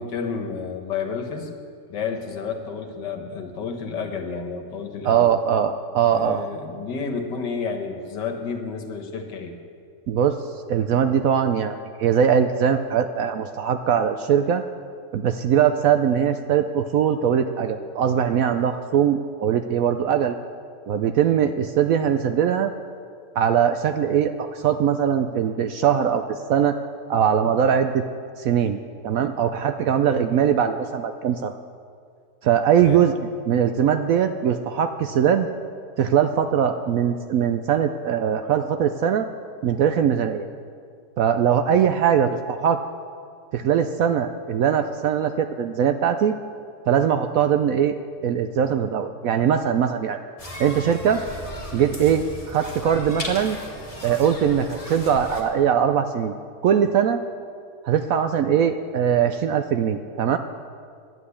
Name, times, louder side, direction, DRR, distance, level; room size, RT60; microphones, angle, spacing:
voice 1, 0.0-1.5 1.9-5.3 6.1-9.5 32.7-33.0, left 5 dB, 80° left, 5 dB, 1.9 m, -30 dB
voice 2, 5.0-6.4 10.1-10.4 10.7-14.6 15.1-20.4 20.9-22.7 23.4-26.8 27.1-28.0 28.4-28.8 29.0-31.6 32.4-33.2 33.5-35.5 36.0-39.3 39.6-40.5 41.2-42.8 43.5-46.3 46.9-48.0 48.2-50.2 50.6-51.2 51.7-53.6 54.0-56.3 56.6-57.2 57.8-60.4, right 8 dB, 70° right, 8 dB, 0.8 m, -21 dB
sound 1, 50.4-55.4, left 1 dB, 20° left, 1.7 m, -36 dB
11.0 x 9.7 x 8.3 m, 2.2 s
omnidirectional pair, 1.8 m